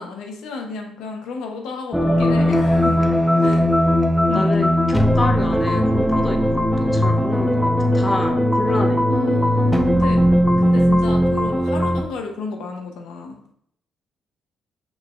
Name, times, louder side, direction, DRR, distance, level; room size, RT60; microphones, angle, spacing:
voice 1, 0.0-3.0 3.4-3.7 4.3-4.8 9.1-10.2 10.6-13.4, left 3 dB, 90° left, 2 dB, 0.8 m, -31 dB
sound 1, 1.9-12.0, equal, 5° left, 0.4 m, -18 dB
voice 2, 4.3-9.0, left 2 dB, 30° left, 3 dB, 0.8 m, -28 dB
6.3 x 3.4 x 2.3 m, 0.67 s
cardioid pair, 90°, 0 cm